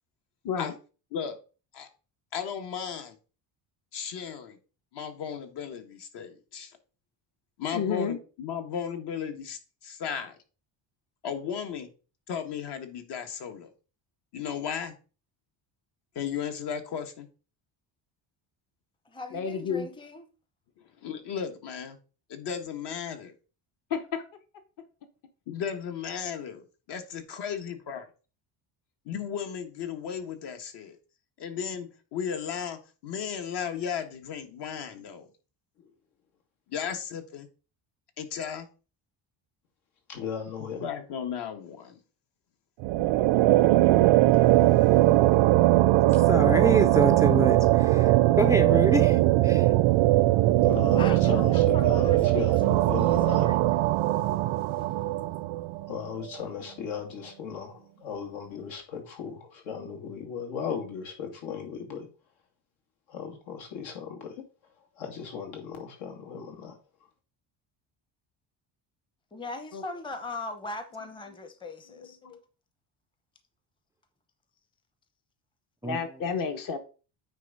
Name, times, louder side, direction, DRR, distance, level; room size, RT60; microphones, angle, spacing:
voice 1, 2.3-3.2 3.9-4.6 4.9-6.7 7.6-10.4 11.2-11.9 12.3-13.7 14.3-14.9 16.1-17.3 21.0-22.0 22.3-23.3 25.5-28.1 29.0-31.0 31.4-35.3 36.7-37.5 38.2-38.7 40.8-42.0, left 7 dB, 60° left, 1.5 m, -35 dB
voice 2, 7.7-8.2 19.3-19.9 23.9-24.2 50.9-51.2 69.7-69.8 72.2-72.4 75.8-76.8, left 6 dB, 45° left, 1.1 m, -31 dB
voice 3, 19.1-20.3 51.0-52.5 53.0-53.8 54.7-55.0 69.3-72.2, left 2 dB, 10° left, 0.8 m, -40 dB
voice 4, 40.1-40.9 50.6-53.5 55.9-62.1 63.1-64.4 65.0-66.8, left 7 dB, 80° left, 2.8 m, -36 dB
sound 1, 42.8-55.9, right 16 dB, 75° right, 0.6 m, -21 dB
voice 5, 46.2-49.2 49.4-49.7 75.8-76.0, right 2 dB, 10° right, 0.3 m, -26 dB
9.1 x 3.5 x 5.3 m
cardioid pair, 140°, 47 cm